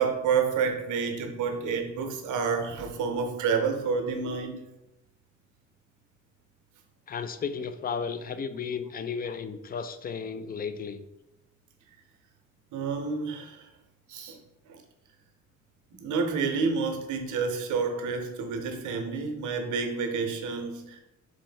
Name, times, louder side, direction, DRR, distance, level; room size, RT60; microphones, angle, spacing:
voice 1, 0.0-4.6 12.7-13.7 14.1-14.4 14.7-14.8 16.0-21.0, right 5 dB, 80° right, 5 dB, 0.8 m, -29 dB
voice 2, 7.1-11.0, left 6 dB, 30° left, 11 dB, 0.4 m, -34 dB
4.3 x 2.6 x 4.5 m, 0.93 s
cardioid pair, 90°, 30 cm